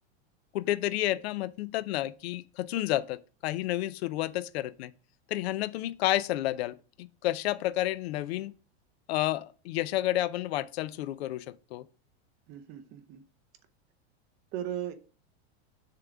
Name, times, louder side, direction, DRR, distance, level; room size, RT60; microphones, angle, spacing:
voice 1, 0.5-4.9 5.3-8.5 9.1-11.9, left 15 dB, 70° left, 0.6 m, -30 dB
voice 2, 12.5-13.2 14.5-14.9, right 11 dB, 30° right, 0.7 m, -37 dB
6.7 x 3.8 x 4.6 m
supercardioid pair, 165°, 32 cm